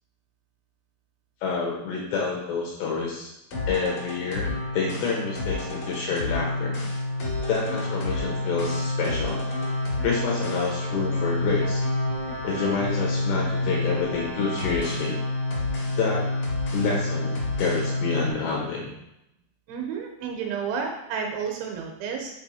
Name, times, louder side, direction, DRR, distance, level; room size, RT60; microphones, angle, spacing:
voice 1, 1.4-3.3 3.7-6.8 7.5-9.4 10.0-11.8 12.4-15.2 16.0-16.3 16.7-18.9, left 5 dB, 75° left, -3 dB, 2.7 m, -28 dB
sound 1, 3.5-18.3, left 2 dB, 55° left, 1.9 m, -28 dB
voice 2, 19.7-22.3, right 6 dB, 80° right, 2 dB, 2.9 m, -31 dB
6.8 x 4.3 x 4.1 m, 0.86 s
omnidirectional pair, 5.7 m